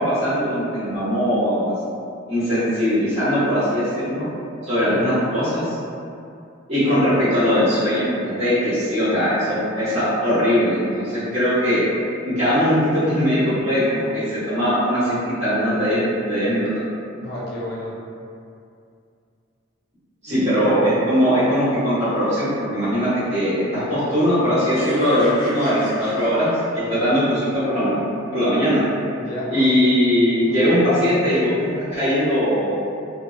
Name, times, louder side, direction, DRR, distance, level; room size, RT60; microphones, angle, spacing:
voice 1, 0.0-1.7 2.3-4.3 4.6-5.8 6.7-11.8 12.2-16.7 20.2-28.0 28.3-28.8 29.5-32.8, equal, 35° right, -13 dB, 1.1 m, -20 dB
voice 2, 17.2-17.9 20.3-20.7 29.1-29.7 30.3-31.3, left 1 dB, 50° left, -6 dB, 0.4 m, -33 dB
sound 1, 24.7-27.0, left 1 dB, 25° left, 0.8 m, -36 dB
2.7 x 2.0 x 2.3 m, 2.4 s
head